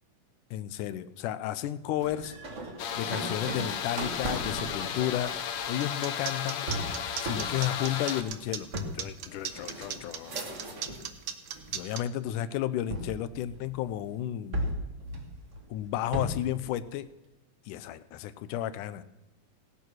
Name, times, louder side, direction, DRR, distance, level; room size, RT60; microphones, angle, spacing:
voice 1, 0.5-2.3 3.0-5.3 5.7-6.7 7.2-8.7 8.9-11.0 11.7-14.7 15.7-17.1 17.7-19.0, left 12 dB, 85° left, 14 dB, 2.2 m, -33 dB
sound 1, 2.0-11.1 11.5-12.2 12.9-14.0 14.5-16.6, right 1 dB, 35° right, 1.2 m, -37 dB
sound 2, 2.8-8.2, left 8 dB, 65° left, 1.5 m, -34 dB
sound 3, 5.8-12.0, right 9 dB, 90° right, 1.1 m, -37 dB
17.0 x 9.1 x 6.3 m, 1.0 s
omnidirectional pair, 3.6 m